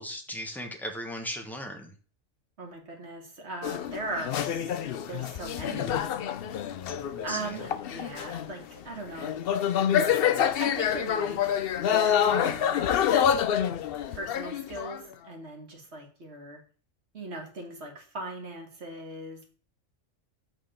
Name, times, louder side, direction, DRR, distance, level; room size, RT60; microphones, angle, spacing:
voice 1, 0.0-1.9 7.1-7.6, equal, ahead, 3 dB, 1.0 m, -37 dB
voice 2, 2.6-4.6 5.1-6.0 7.2-9.3 10.6-11.4 11.9-12.8 14.1-16.6 17.1-19.5, right 2 dB, 55° right, 1 dB, 1.9 m, -39 dB
sound 1, 3.6-8.6 9.1-15.1, left 9 dB, 60° left, 0.6 m, -27 dB
7.9 x 3.8 x 5.0 m, 0.40 s
omnidirectional pair, 1.4 m